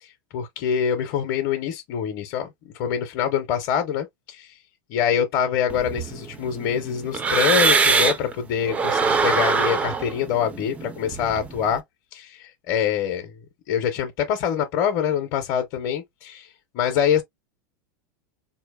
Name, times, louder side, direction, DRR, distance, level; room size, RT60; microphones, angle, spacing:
voice 1, 0.3-2.5 2.8-4.5 4.9-11.8 12.1-13.3 13.7-16.5 16.7-17.2, left 8 dB, 40° left, 0.7 m, -25 dB
sound 1, 5.7-8.3 8.7-11.7, right 4 dB, 15° right, 0.3 m, -23 dB
4.4 x 2.8 x 2.2 m
supercardioid pair, 160°, 10 cm